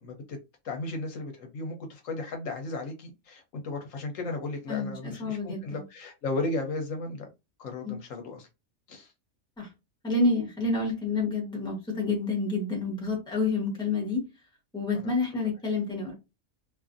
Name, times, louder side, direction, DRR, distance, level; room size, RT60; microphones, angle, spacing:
voice 1, 0.0-0.4 0.6-7.3 7.6-8.5 8.9-9.1 14.9-15.1, left 2 dB, 70° left, 4 dB, 1.0 m, -35 dB
voice 2, 4.7-5.8 7.8-8.0 9.6-9.7 10.0-14.2 14.7-16.1, left 3 dB, 5° left, 0 dB, 0.8 m, -28 dB
2.6 x 2.4 x 2.5 m, 0.25 s
omnidirectional pair, 1.5 m